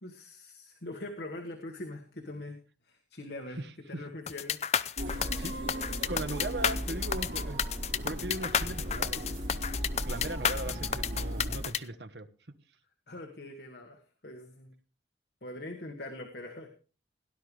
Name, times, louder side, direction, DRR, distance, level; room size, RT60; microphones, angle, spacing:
voice 1, 0.0-2.6 2.8-3.6 3.9-4.6 13.1-14.8 15.4-16.7, left 1 dB, 65° left, 3 dB, 1.6 m, -42 dB
voice 2, 3.6-4.1 5.3-7.6 8.0-9.5 10.0-12.3, right 2 dB, 70° right, 10 dB, 1.2 m, -39 dB
sound 1, 4.3-11.8, left 8 dB, 35° left, 0.5 m, -31 dB
sound 2, 5.0-11.7, equal, 85° right, 3.9 m, -36 dB
17.5 x 11.0 x 3.3 m, 0.37 s
head